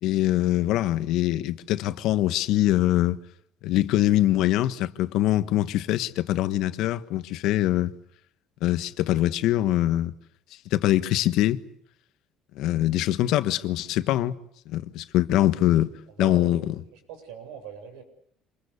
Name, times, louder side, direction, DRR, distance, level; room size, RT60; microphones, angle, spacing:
voice 1, 0.0-3.2 3.6-7.9 8.6-10.1 10.7-11.6 12.5-14.4 14.7-15.9 16.2-16.6, left 14 dB, 70° left, 1.4 m, -23 dB
voice 2, 16.1-16.5 16.9-18.0, right 9 dB, 85° right, 7.7 m, -41 dB
27.5 x 21.5 x 8.4 m
supercardioid pair, 100°, 0 cm